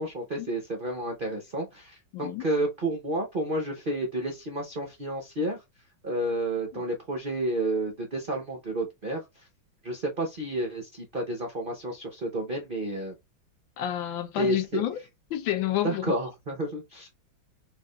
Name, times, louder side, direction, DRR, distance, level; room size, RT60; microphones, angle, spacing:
voice 1, 0.0-5.6 6.0-9.2 9.8-13.1 14.4-14.8 15.8-17.1, right 1 dB, 80° right, 0.4 m, -30 dB
voice 2, 2.1-2.5 6.7-6.8 13.8-15.0 15.3-16.1, left 13 dB, 75° left, 1.4 m, -29 dB
4.7 x 2.5 x 2.3 m
omnidirectional pair, 2.2 m